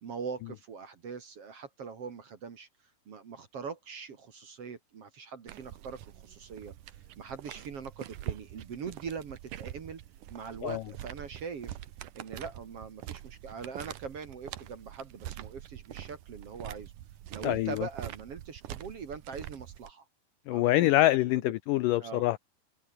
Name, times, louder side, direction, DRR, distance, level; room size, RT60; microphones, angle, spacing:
voice 1, 0.0-2.7 3.1-6.7 7.2-10.0 10.3-11.8 12.1-16.9 17.3-20.0 20.5-20.9 21.2-21.5 22.0-22.2, right 5 dB, 45° right, 2.4 m, -42 dB
sound 1, 5.5-19.9, right 13 dB, 65° right, 2.4 m, -44 dB
voice 2, 17.4-17.9 20.5-22.4, left 16 dB, 85° left, 1.9 m, -25 dB
omnidirectional pair, 4.6 m